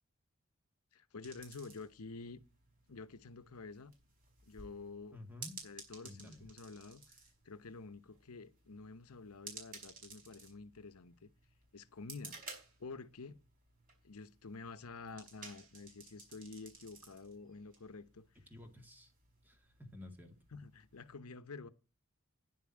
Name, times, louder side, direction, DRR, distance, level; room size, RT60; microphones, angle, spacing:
voice 1, 0.9-2.4 2.9-3.9 4.4-5.2 5.6-7.2 7.4-11.3 11.7-12.4 12.8-13.4 14.0-18.3 20.5-21.7, left 4 dB, 85° left, 0.9 m, -49 dB
sound 1, 1.2-21.1, right 4 dB, 40° right, 5.1 m, -56 dB
voice 2, 5.1-5.6 6.0-6.5 18.4-19.1 19.4-20.4, left 1 dB, 10° right, 2.1 m, -52 dB
10.5 x 7.2 x 8.6 m
head